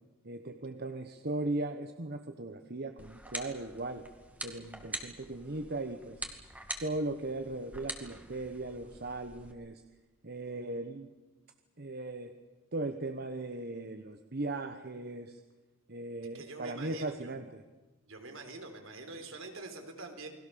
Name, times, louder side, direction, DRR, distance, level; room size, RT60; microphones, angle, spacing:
voice 1, 0.2-4.1 4.4-6.2 6.8-9.8 10.2-11.1 11.8-12.3 12.7-15.4 15.9-17.6, right 2 dB, 50° right, 7 dB, 1.2 m, -38 dB
sound 1, 3.0-9.5, right 1 dB, 5° right, 2.2 m, -44 dB
voice 2, 16.3-17.3 18.1-20.3, right 3 dB, 70° right, 5 dB, 3.8 m, -45 dB
29.0 x 21.5 x 7.0 m, 1.2 s
head